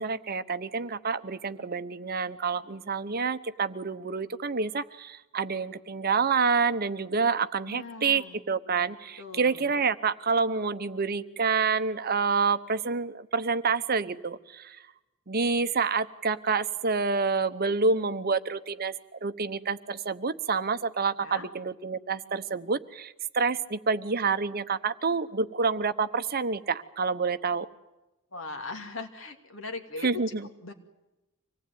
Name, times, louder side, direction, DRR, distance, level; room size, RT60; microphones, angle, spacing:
voice 1, 0.0-14.8 15.3-27.7 30.0-30.5, right 4 dB, 45° right, 12 dB, 0.9 m, -28 dB
voice 2, 7.6-8.4 9.2-9.7 21.2-21.5 28.3-30.2 30.6-30.7, left 3 dB, 65° left, 5 dB, 2.7 m, -40 dB
25.5 x 18.5 x 9.3 m, 1.0 s
head